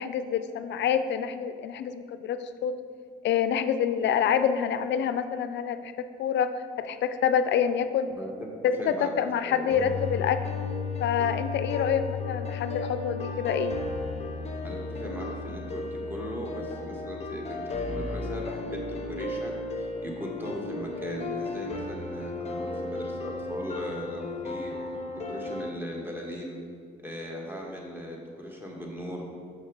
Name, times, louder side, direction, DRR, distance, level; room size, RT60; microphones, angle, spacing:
voice 1, 0.0-2.7 3.2-5.9 6.2-8.1 8.6-10.4 11.0-13.8, left 8 dB, 65° left, 11 dB, 0.4 m, -27 dB
voice 2, 8.1-8.5 8.8-9.1 9.4-9.8 14.6-24.7 25.3-26.6 27.0-29.2, equal, 10° right, -1 dB, 1.4 m, -38 dB
sound 1, 9.7-25.7, left 3 dB, 35° left, 0.7 m, -34 dB
6.3 x 6.1 x 3.7 m, 2.1 s
cardioid pair, 90°, 20 cm